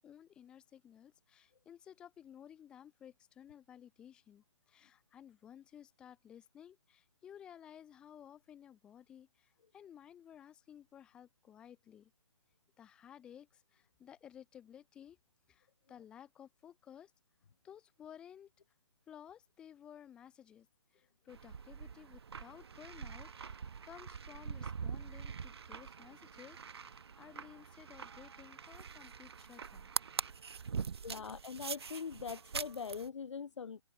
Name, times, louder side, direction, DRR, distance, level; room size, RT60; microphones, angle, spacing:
voice 1, 0.0-12.1 12.8-15.2 15.5-17.1 17.6-18.5 19.1-20.7 20.9-29.9 30.8-31.2, left 9 dB, 5° left, 0.4 m, -56 dB
sound 1, 21.3-33.1, right 6 dB, 55° right, 1.2 m, -44 dB
voice 2, 31.0-33.8, left 6 dB, 75° left, 0.4 m, -42 dB
open air
figure-of-eight pair, 135°, 15 cm